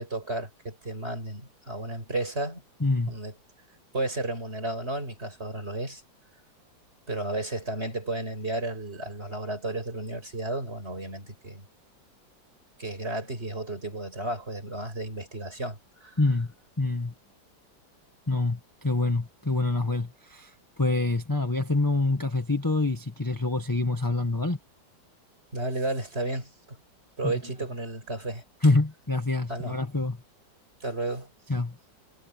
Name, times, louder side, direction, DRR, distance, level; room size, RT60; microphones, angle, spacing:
voice 1, 0.0-2.6 3.1-3.3 3.9-6.0 7.1-11.6 12.8-16.1 25.5-26.8 27.2-28.4 29.5-29.8 30.8-31.3, right 2 dB, 30° right, 6.3 m, -33 dB
voice 2, 2.8-3.1 16.2-16.5 16.8-17.1 18.3-24.6 27.2-27.4 28.6-30.2 31.5-31.8, left 2 dB, 10° left, 1.5 m, -26 dB
omnidirectional pair, 2.1 m